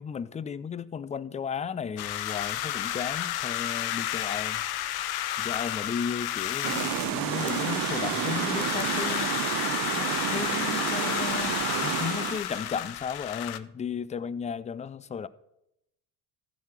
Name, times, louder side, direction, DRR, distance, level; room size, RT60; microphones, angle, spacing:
voice 1, 0.0-4.6 5.4-9.3 10.0-15.3, left 7 dB, 15° left, 0.4 m, -35 dB
sound 1, 2.0-13.6, left 12 dB, 55° left, 0.7 m, -31 dB
sound 2, 6.6-12.4, right 15 dB, 45° right, 0.5 m, -30 dB
Fart, 10.5-12.8, right 7 dB, 90° right, 1.2 m, -47 dB
14.5 x 4.9 x 5.9 m
hypercardioid pair, 60°, 46 cm